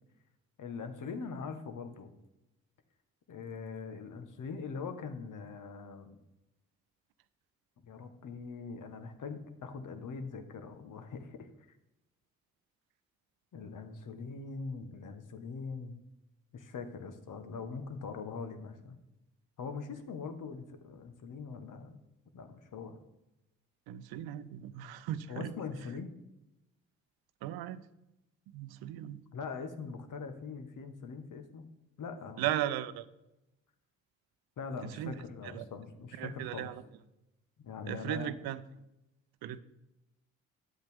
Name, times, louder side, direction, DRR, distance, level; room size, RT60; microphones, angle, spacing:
voice 1, 0.6-2.1 3.3-6.2 7.8-11.7 13.5-16.0 16.5-19.0 19.6-22.0 22.3-23.0 25.3-26.1 29.3-31.7 32.0-32.5 34.6-36.7 37.6-38.4, left 5 dB, 55° left, 8 dB, 1.2 m, -42 dB
voice 2, 23.9-25.5 27.4-27.8 28.5-29.2 32.4-33.0 34.8-35.1 35.5-35.7 36.2-36.8 37.9-38.6 39.4-39.6, right 12 dB, 75° right, 14 dB, 0.6 m, -36 dB
10.0 x 8.0 x 3.5 m, 0.92 s
hypercardioid pair, 45°, 37 cm